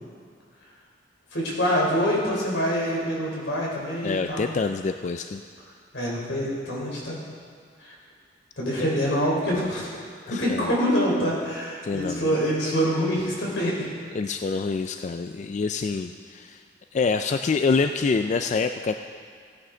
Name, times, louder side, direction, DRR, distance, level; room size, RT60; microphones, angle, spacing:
voice 1, 1.3-4.5 5.9-7.2 7.8-7.9 8.6-10.0 10.3-13.9, equal, 85° left, -4 dB, 3.5 m, -25 dB
voice 2, 4.0-5.4 10.3-10.8 11.8-12.3 14.1-16.6 16.9-18.9, left 4 dB, 40° left, 7 dB, 0.3 m, -26 dB
16.5 x 9.7 x 3.8 m, 2.1 s
head